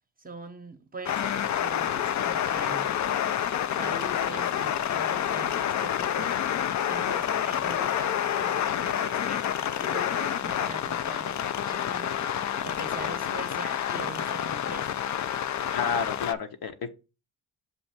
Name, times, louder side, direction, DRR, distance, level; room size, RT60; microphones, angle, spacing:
voice 1, 0.2-3.0 3.8-6.4 6.9-12.3 12.6-14.9, right 3 dB, 20° right, 0.8 m, -42 dB
sound 1, 1.0-16.3, left 10 dB, 45° left, 0.4 m, -28 dB
voice 2, 15.7-16.9, left 6 dB, 65° left, 1.0 m, -30 dB
6.9 x 2.6 x 5.7 m
cardioid pair, 90°, 40 cm